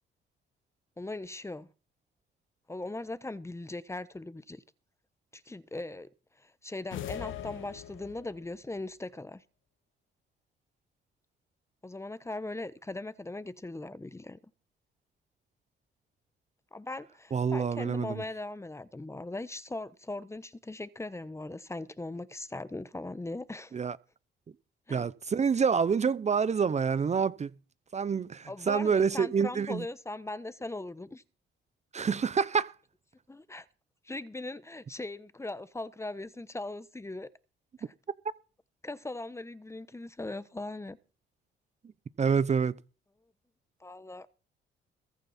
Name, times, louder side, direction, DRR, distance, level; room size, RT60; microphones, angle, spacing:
voice 1, 1.0-1.7 2.7-4.6 5.3-6.1 6.4-9.4 11.8-14.4 16.7-23.9 24.9-25.1 28.5-31.2 33.3-33.7 34.0-37.3 37.8-37.9 38.8-41.0 43.8-44.3, left 2 dB, 15° left, 1.0 m, -39 dB
sound 1, 6.9-8.5, left 10 dB, 75° left, 1.8 m, -40 dB
voice 2, 17.3-18.2 23.7-24.0 24.9-27.5 27.9-29.8 31.9-32.7 42.2-42.7, right 6 dB, 35° right, 0.7 m, -27 dB
21.5 x 8.9 x 4.3 m
cardioid pair, 90°, 20 cm